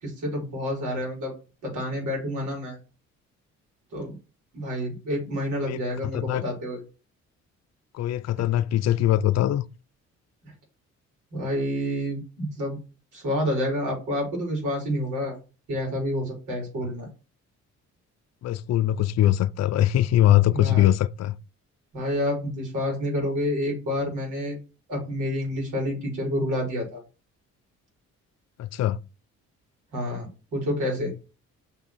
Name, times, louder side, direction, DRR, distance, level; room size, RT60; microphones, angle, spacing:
voice 1, 0.0-1.3 1.6-2.8 3.9-4.1 4.5-6.8 8.5-8.6 10.4-10.5 11.3-12.8 13.1-15.4 15.7-17.1 20.5-20.9 21.9-24.6 24.9-27.0 29.9-31.1, equal, 85° right, 4.4 m, -28 dB
voice 2, 8.0-9.6 18.4-21.4 28.6-29.0, left 13 dB, 60° left, 0.5 m, -22 dB
5.9 x 3.6 x 6.0 m
cardioid pair, 90°, 30 cm